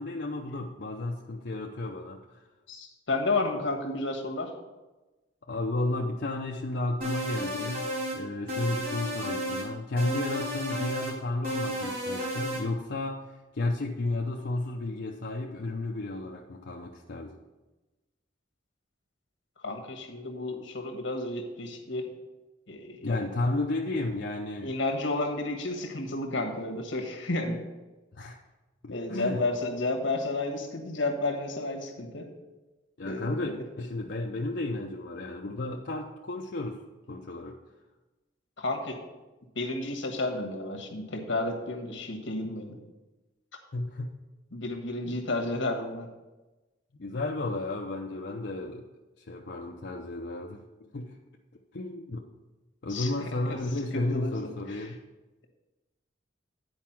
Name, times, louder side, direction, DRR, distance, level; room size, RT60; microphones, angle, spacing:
voice 1, 0.0-2.4 5.5-17.4 23.0-24.8 28.1-28.4 28.8-29.5 33.0-36.8 37.1-37.6 43.7-44.2 45.0-45.2 47.0-48.9 49.2-50.6 50.9-51.1 51.7-52.3 52.8-55.0, left 2 dB, 60° left, 0 dB, 0.6 m, -33 dB
voice 2, 2.7-4.5 19.6-22.1 22.7-23.3 24.6-27.6 28.9-32.3 33.0-33.6 38.6-39.0 39.5-42.8 44.5-46.1 52.9-53.6 53.9-54.9, left 2 dB, 80° left, 3 dB, 1.4 m, -32 dB
sound 1, 7.0-8.2 8.5-9.7 10.0-11.2 11.4-12.6, equal, 50° right, 2.7 m, -33 dB
9.5 x 4.7 x 5.9 m, 1.1 s
head